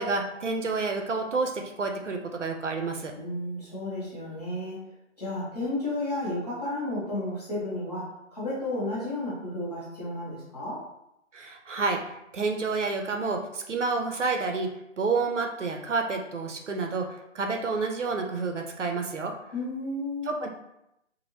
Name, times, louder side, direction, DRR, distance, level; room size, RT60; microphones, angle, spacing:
voice 1, 0.0-3.1 11.3-14.7 15.0-19.3 20.3-20.5, right 4 dB, 70° right, 3 dB, 0.6 m, -29 dB
voice 2, 3.2-4.8 5.2-10.8 19.5-20.4, left 1 dB, 30° left, -8 dB, 1.2 m, -32 dB
3.0 x 2.6 x 2.7 m, 0.84 s
figure-of-eight pair, 175°, 37 cm